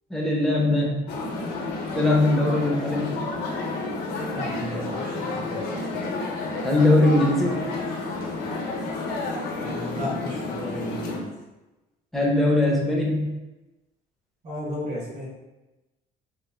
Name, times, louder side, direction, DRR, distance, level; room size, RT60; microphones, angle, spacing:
voice 1, 0.1-1.0 1.9-3.1 6.6-7.6 12.1-13.3, left 2 dB, ahead, -2 dB, 0.5 m, -21 dB
sound 1, 1.1-11.2, left 3 dB, 80° left, 0.7 m, -30 dB
voice 2, 4.3-6.0 9.5-11.3 14.4-15.3, left 1 dB, 45° right, -5 dB, 1.3 m, -34 dB
3.1 x 2.5 x 3.5 m, 1.1 s
cardioid pair, 160°, 16 cm